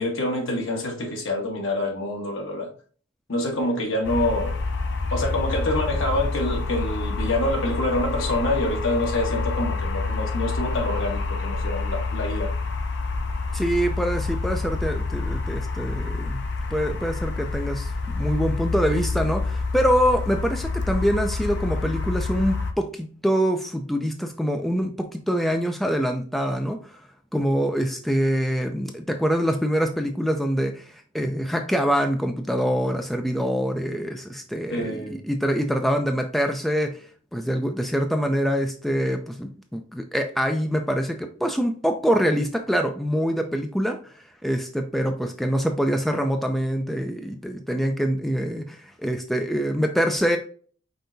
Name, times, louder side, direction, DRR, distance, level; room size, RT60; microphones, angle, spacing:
voice 1, 0.0-2.7 3.3-4.6 5.1-12.5 34.7-35.2, left 1 dB, 75° left, 1.3 m, -26 dB
sound 1, 4.0-22.7, left 3 dB, 55° left, 0.6 m, -28 dB
voice 2, 13.5-16.4 16.7-27.0 27.3-37.1 37.3-44.1 44.4-50.4, equal, ahead, 0.4 m, -25 dB
5.5 x 3.3 x 2.6 m
head